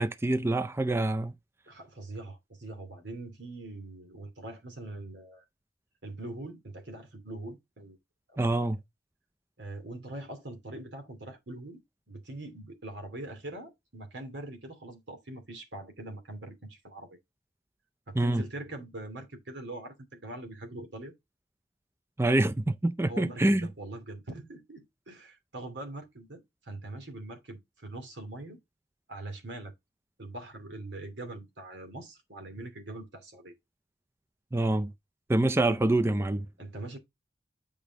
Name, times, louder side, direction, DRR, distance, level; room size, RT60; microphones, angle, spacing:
voice 1, 0.0-1.3 8.4-8.8 18.2-18.4 22.2-23.7 34.5-34.9 35.3-36.5, right 1 dB, 15° right, 0.4 m, -26 dB
voice 2, 1.7-5.4 6.0-8.0 8.3-8.6 9.6-11.8 12.1-17.2 18.1-21.1 23.1-28.6 29.1-29.7 30.2-33.5 36.6-37.0, right 2 dB, 90° right, 2.7 m, -42 dB
8.4 x 5.2 x 3.6 m
head